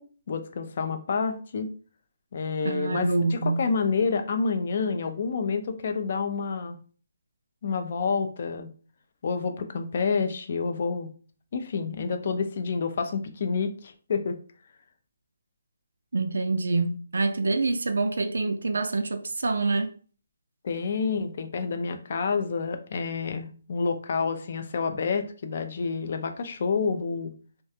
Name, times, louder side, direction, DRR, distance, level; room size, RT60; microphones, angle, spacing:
voice 1, 0.3-1.7 2.3-6.8 7.6-8.7 9.2-11.1 11.5-14.4 20.6-27.3, left 5 dB, 40° left, 0.3 m, -28 dB
voice 2, 2.6-3.6 16.1-20.0, right 3 dB, 75° right, 0.3 m, -26 dB
2.3 x 2.1 x 2.8 m
hypercardioid pair, 170°, 0 cm